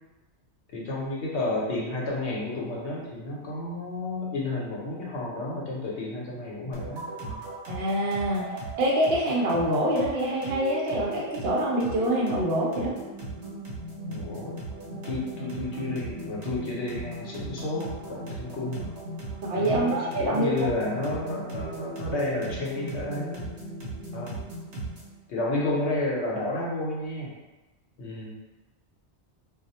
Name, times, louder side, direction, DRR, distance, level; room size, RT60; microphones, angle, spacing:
voice 1, 0.7-7.5 14.1-14.6 15.0-18.9 19.5-23.4 24.1-24.3 25.3-27.3 28.0-28.4, left 2 dB, 75° left, -4 dB, 0.9 m, -31 dB
sound 1, 6.7-25.2, right 2 dB, 85° right, 1.0 m, -38 dB
voice 2, 7.7-8.5 8.8-12.9 19.4-20.5, right 1 dB, 65° right, -3 dB, 0.8 m, -25 dB
2.3 x 2.0 x 2.7 m, 1.1 s
omnidirectional pair, 1.2 m